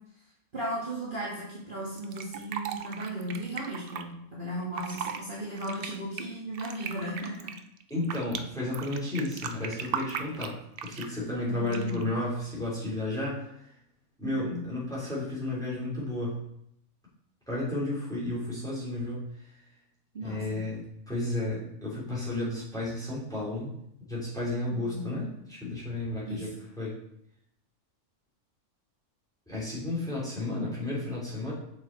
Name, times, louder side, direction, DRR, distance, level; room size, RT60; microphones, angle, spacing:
voice 1, 0.5-7.4 11.5-12.0 14.2-14.6 20.1-20.6 24.7-25.1 26.3-26.5, right 1 dB, 35° right, -7 dB, 1.7 m, -36 dB
Fill (with liquid), 2.0-4.0 4.6-5.2 5.6-8.4 8.7-11.2 11.7-12.1, right 7 dB, 65° right, 0.5 m, -37 dB
voice 2, 7.9-13.7 14.2-16.5 17.5-19.6 20.2-23.7 24.1-27.0 29.5-31.5, left 2 dB, ahead, -8 dB, 3.3 m, -33 dB
6.9 x 6.4 x 4.0 m, 0.76 s
omnidirectional pair, 1.5 m